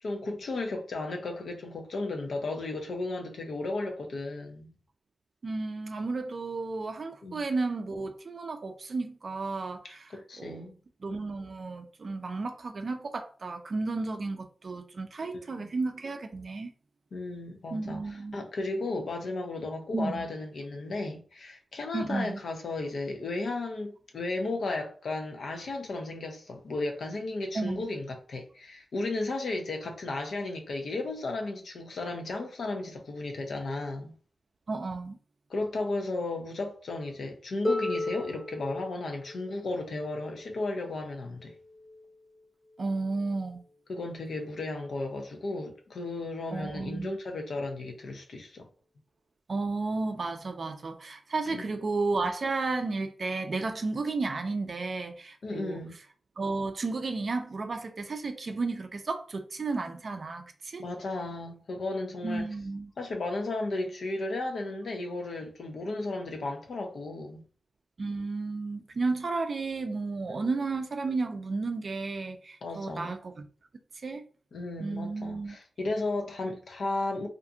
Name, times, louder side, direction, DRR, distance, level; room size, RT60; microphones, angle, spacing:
voice 1, 0.0-4.7 7.2-7.4 10.1-10.7 15.2-15.7 17.1-34.1 35.5-41.5 43.9-48.7 51.5-51.6 55.4-55.9 60.8-62.5 63.0-67.4 70.3-70.4 72.6-73.1 74.5-77.3, left 2 dB, 70° left, 0.6 m, -34 dB
voice 2, 5.4-10.7 11.0-16.7 17.7-18.4 19.9-20.3 21.9-22.4 27.5-27.9 34.7-35.2 42.8-43.6 46.5-47.1 49.5-55.8 56.4-60.8 62.2-62.9 68.0-73.5 73.9-74.2 74.8-75.6, right 3 dB, 50° right, 0.4 m, -33 dB
Harp, 37.6-43.4 44.5-44.6, left 2 dB, 25° left, 0.8 m, -36 dB
2.5 x 2.3 x 2.7 m
wide cardioid pair, 85°, 0 cm